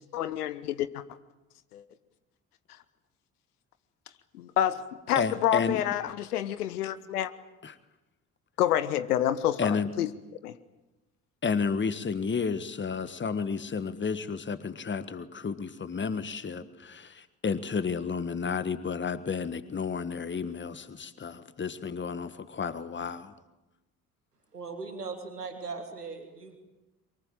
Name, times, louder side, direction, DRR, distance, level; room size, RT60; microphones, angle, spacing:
voice 1, 0.1-1.0 1.7-1.8 4.3-7.3 8.6-10.1 10.4-10.6, left 11 dB, 75° left, 1.0 m, -28 dB
voice 2, 5.1-5.8 7.6-7.8 9.6-9.9 11.4-23.3, left 5 dB, 25° left, 1.5 m, -31 dB
voice 3, 24.5-26.6, right 4 dB, 85° right, 1.9 m, -39 dB
23.5 x 22.5 x 8.9 m
figure-of-eight pair, 45°, 46 cm